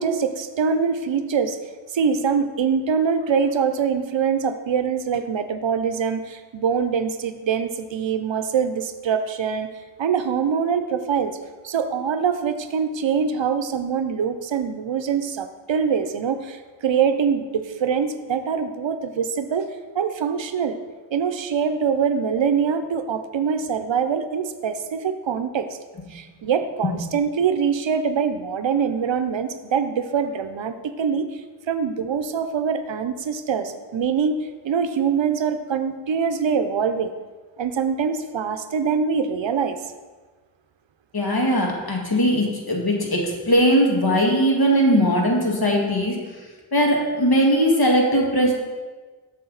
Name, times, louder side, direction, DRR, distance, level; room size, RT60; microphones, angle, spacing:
voice 1, 0.0-1.6 1.9-9.7 10.0-11.4 11.6-19.7 19.9-20.8 21.1-25.7 26.1-31.3 31.7-34.3 34.6-37.1 37.6-39.8, right 6 dB, 75° right, 10 dB, 0.6 m, -24 dB
voice 2, 41.1-46.2 46.7-48.5, equal, 55° left, -1 dB, 1.7 m, -19 dB
6.9 x 6.7 x 3.9 m, 1.4 s
wide cardioid pair, 45°, 46 cm